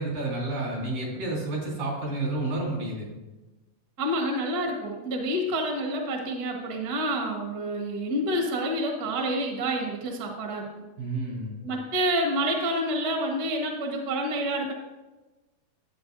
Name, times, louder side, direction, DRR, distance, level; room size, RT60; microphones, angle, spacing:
voice 1, 0.0-3.1 11.0-11.5, right 2 dB, 80° right, -4 dB, 4.9 m, -30 dB
voice 2, 4.0-10.7 11.6-14.7, right 1 dB, 50° right, 1 dB, 1.1 m, -28 dB
11.5 x 8.4 x 2.7 m, 1.1 s
omnidirectional pair, 3.8 m